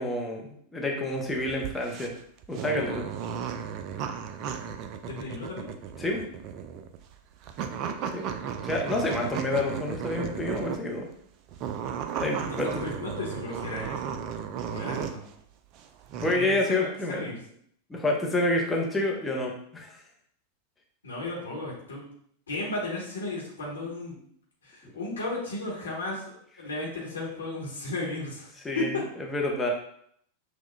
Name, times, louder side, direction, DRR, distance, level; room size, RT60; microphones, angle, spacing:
voice 1, 0.0-2.1 2.5-3.1 6.0-6.2 8.1-8.2 8.6-11.1 12.2-12.9 16.2-17.3 17.9-20.0 24.8-24.9 28.6-29.0 29.3-29.7, left 2 dB, 10° left, -1 dB, 0.7 m, -28 dB
sound 1, 1.1-10.9 11.5-15.3 15.7-16.4, right 7 dB, 40° right, 0.3 m, -35 dB
voice 2, 5.0-5.7 12.4-14.2 14.7-15.2 16.3-17.4 21.0-22.1 22.5-24.1 24.6-28.5 28.7-28.8, left 2 dB, 70° left, -5 dB, 1.1 m, -34 dB
6.0 x 2.3 x 2.2 m, 0.65 s
figure-of-eight pair, 90°, 0 cm